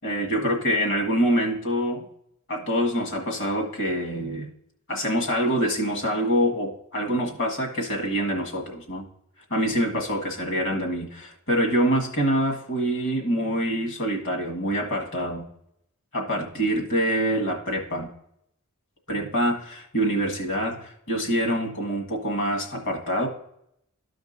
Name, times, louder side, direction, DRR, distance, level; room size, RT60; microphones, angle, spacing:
voice 1, 0.0-2.0 2.5-4.5 4.9-9.0 9.5-15.5 16.1-18.1 19.1-23.3, equal, 60° left, 0 dB, 1.7 m, -25 dB
13.5 x 5.2 x 2.6 m, 0.74 s
head